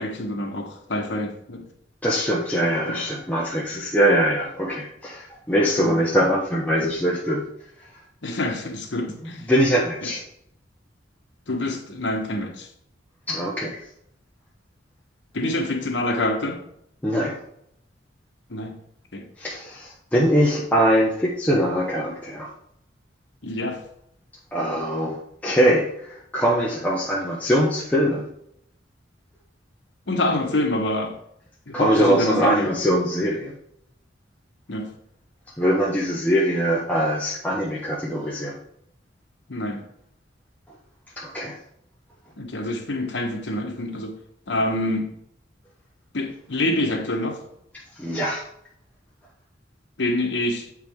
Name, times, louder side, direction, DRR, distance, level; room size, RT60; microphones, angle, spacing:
voice 1, 0.0-1.6 2.9-3.0 5.8-6.0 8.2-9.5 10.0-10.1 11.5-12.7 15.3-16.6 18.5-18.7 19.1-19.3 23.4-23.8 30.1-31.1 31.7-32.7 34.7-34.9 39.5-39.8 42.4-44.1 44.5-45.1 46.1-47.4 50.0-50.6, left 1 dB, 70° left, 3 dB, 1.1 m, -26 dB
voice 2, 2.0-7.5 9.4-10.2 13.3-13.8 17.0-17.4 19.4-22.5 24.5-28.3 31.7-33.5 35.6-38.6 40.7-40.8 41.2-41.6 48.0-48.5, equal, 10° left, -5 dB, 0.9 m, -22 dB
7.6 x 4.7 x 3.6 m, 0.73 s
head